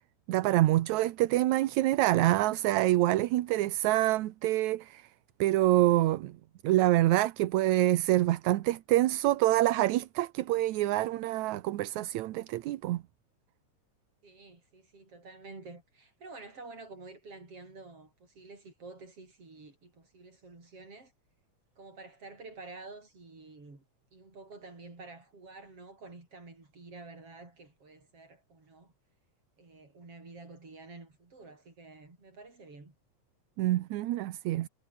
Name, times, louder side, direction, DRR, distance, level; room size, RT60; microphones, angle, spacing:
voice 1, 0.3-5.1 5.4-6.4 6.6-13.0 33.6-34.7, right 15 dB, 80° right, 2.2 m, -26 dB
voice 2, 14.2-21.1 21.8-23.8 24.1-28.9 29.6-32.9, right 3 dB, 50° right, 7.7 m, -49 dB
omnidirectional pair, 3.3 m